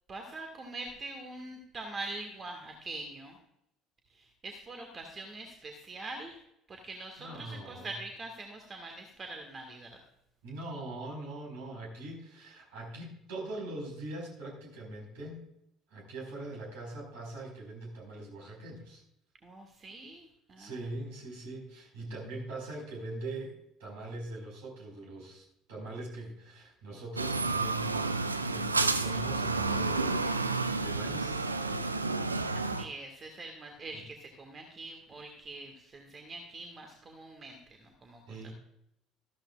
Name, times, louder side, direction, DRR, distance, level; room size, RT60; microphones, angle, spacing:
voice 1, 0.1-3.4 4.1-6.4 6.7-10.0 19.4-20.9 32.5-38.5, right 2 dB, 30° right, 4 dB, 1.7 m, -44 dB
voice 2, 7.2-7.9 10.4-15.5 15.9-19.0 20.6-31.6 33.9-34.0 38.3-38.5, right 2 dB, 65° right, 0 dB, 4.8 m, -42 dB
sound 1, 27.2-32.8, right 3 dB, 85° right, 0.5 m, -30 dB
14.0 x 12.5 x 2.4 m, 0.78 s
figure-of-eight pair, 60°, 0 cm